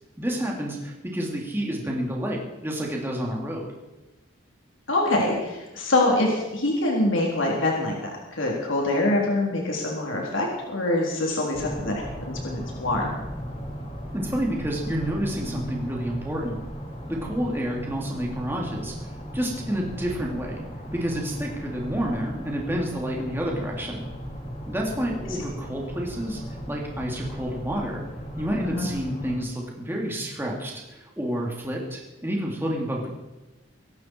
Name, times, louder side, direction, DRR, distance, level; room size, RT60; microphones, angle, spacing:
voice 1, 0.2-3.7 14.1-16.6 17.1-20.6 20.9-24.0 24.7-28.0 28.4-33.1, equal, 10° right, -1 dB, 2.9 m, -29 dB
voice 2, 4.9-13.2 28.6-28.9, left 2 dB, 75° left, -1 dB, 3.7 m, -25 dB
sound 1, 11.5-29.4, equal, 30° left, 6.0 m, -36 dB
24.0 x 11.5 x 4.6 m, 1.1 s
head